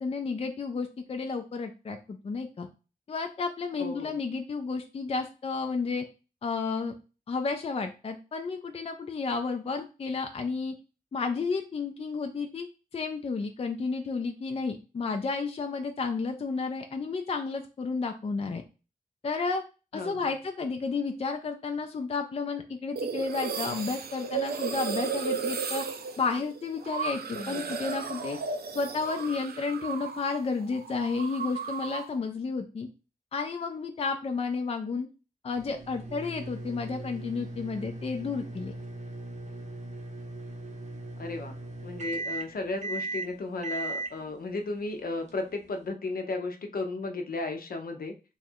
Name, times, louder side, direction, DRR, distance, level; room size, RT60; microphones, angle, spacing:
voice 1, 0.0-2.7 3.1-6.1 6.4-6.9 7.3-10.7 11.1-12.7 12.9-18.6 19.2-19.6 19.9-25.8 26.2-28.4 28.7-32.9 33.3-35.1 35.4-38.7, left 4 dB, 40° left, 5 dB, 0.4 m, -32 dB
voice 2, 3.8-4.2 19.9-20.3 27.3-27.7 41.2-41.6 41.8-48.1, left 3 dB, 70° left, 4 dB, 0.7 m, -34 dB
sound 1, 23.0-30.4 30.6-32.2, right 6 dB, 85° right, 0.5 m, -34 dB
sound 2, 35.5-45.9, right 2 dB, 50° right, 0.7 m, -39 dB
3.1 x 2.4 x 4.3 m, 0.32 s
wide cardioid pair, 125°, 16 cm